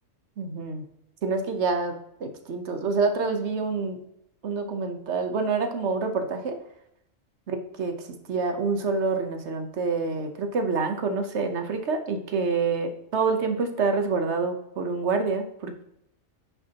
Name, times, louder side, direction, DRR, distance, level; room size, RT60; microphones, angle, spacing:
voice 1, 0.4-0.8 1.2-4.0 4.4-6.6 7.5-15.8, right 4 dB, 60° right, 7 dB, 1.1 m, -27 dB
9.8 x 5.8 x 2.8 m, 0.78 s
omnidirectional pair, 1.3 m